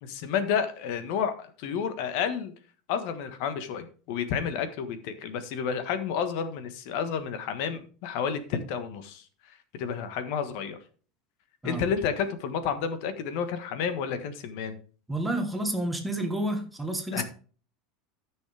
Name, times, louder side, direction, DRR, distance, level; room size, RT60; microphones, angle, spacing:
voice 1, 0.0-2.5 2.9-10.8 11.6-14.8 17.1-17.2, left 7 dB, 60° left, 10 dB, 1.4 m, -31 dB
voice 2, 15.1-17.2, right 1 dB, 5° right, 4 dB, 1.3 m, -30 dB
14.0 x 6.3 x 3.4 m, 0.40 s
supercardioid pair, 165°, 0 cm